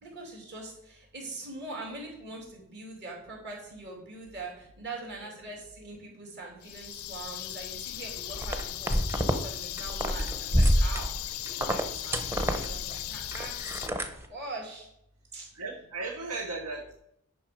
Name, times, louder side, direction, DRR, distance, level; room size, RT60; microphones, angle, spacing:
voice 1, 0.0-13.6 14.3-14.9 15.3-15.5, right 2 dB, 50° right, -2 dB, 3.0 m, -42 dB
sound 1, 6.6-13.9, left 14 dB, 90° left, 0.5 m, -38 dB
sound 2, 8.3-9.4 9.7-14.3, equal, 10° right, 0.7 m, -27 dB
voice 2, 15.5-17.0, right 3 dB, 85° right, 3 dB, 0.9 m, -37 dB
10.0 x 5.5 x 5.1 m, 0.77 s
head